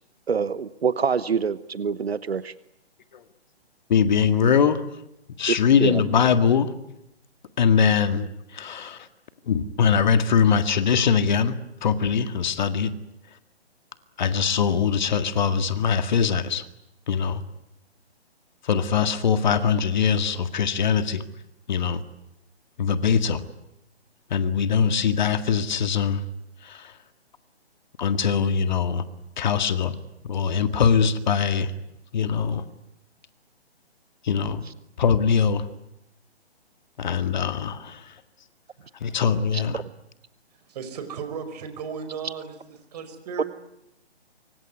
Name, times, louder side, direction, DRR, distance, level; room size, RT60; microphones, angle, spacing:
voice 1, 0.3-2.5 5.5-6.0 39.5-39.6 43.4-43.5, right 6 dB, 70° right, 16 dB, 1.1 m, -25 dB
voice 2, 3.9-4.8 5.4-6.7 7.6-9.1 9.5-12.9 14.2-16.6 17.1-17.4 18.6-21.2 21.7-22.0 22.8-23.4 24.3-26.2 26.6-26.9 28.0-29.0 29.4-30.0 30.2-31.7 32.1-32.6 34.2-34.6 35.0-35.7 37.0-38.1 39.0-39.8, left 7 dB, 45° left, 10 dB, 1.9 m, -22 dB
voice 3, 40.7-42.6 42.9-43.4, right 6 dB, 40° right, 8 dB, 5.2 m, -35 dB
25.0 x 24.5 x 9.6 m, 0.84 s
figure-of-eight pair, 140°, 32 cm